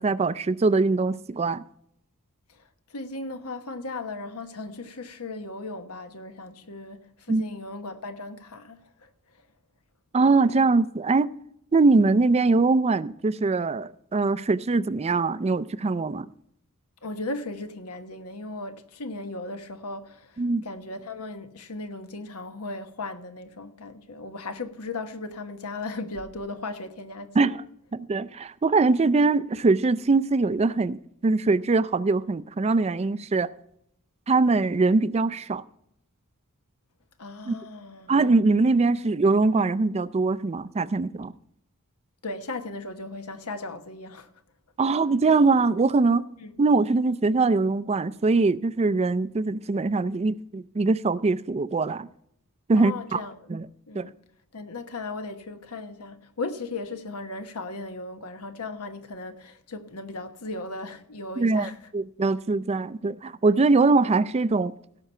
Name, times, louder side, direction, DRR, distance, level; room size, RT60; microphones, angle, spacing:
voice 1, 0.0-1.6 7.3-7.4 10.1-11.3 11.7-16.3 20.4-20.6 27.4-27.6 27.9-31.0 31.2-33.5 34.3-35.6 37.5-37.6 38.1-41.3 44.8-46.3 46.6-52.1 52.7-53.2 53.5-53.7 53.9-54.1 61.4-64.7, right 3 dB, 30° right, 0.4 m, -22 dB
voice 2, 2.5-9.1 17.0-27.5 37.2-38.1 42.2-44.3 46.4-46.5 52.8-53.3 53.9-54.1 54.5-61.8, left 2 dB, 80° left, 1.2 m, -37 dB
17.5 x 6.0 x 5.5 m
head